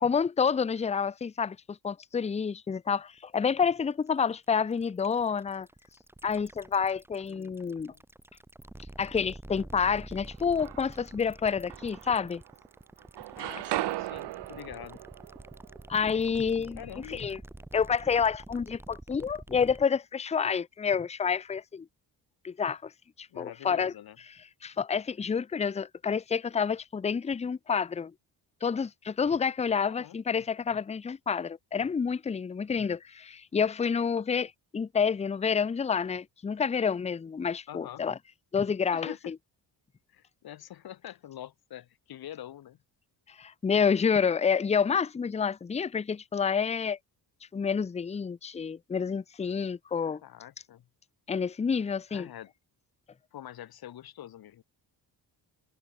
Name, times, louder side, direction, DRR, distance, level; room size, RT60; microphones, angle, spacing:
voice 1, 0.0-5.7 6.2-7.9 9.0-12.4 15.9-16.8 17.1-17.4 17.7-21.9 22.4-22.9 23.2-23.9 24.6-28.1 28.6-38.2 38.5-39.3 43.4-47.0 47.5-50.2 51.3-52.3, left 6 dB, 15° left, 0.6 m, -28 dB
sound 1, 3.2-19.8, right 1 dB, 5° right, 0.9 m, -48 dB
voice 2, 7.3-8.0 13.4-15.0 16.8-17.3 23.3-24.2 29.8-30.4 37.7-38.0 38.9-39.3 40.1-42.8 50.0-50.8 52.1-52.5 53.3-54.6, left 11 dB, 60° left, 1.9 m, -45 dB
sound 2, 10.3-11.1 11.7-12.7 13.0-16.9, right 16 dB, 75° right, 0.7 m, -38 dB
wide cardioid pair, 180°, 41 cm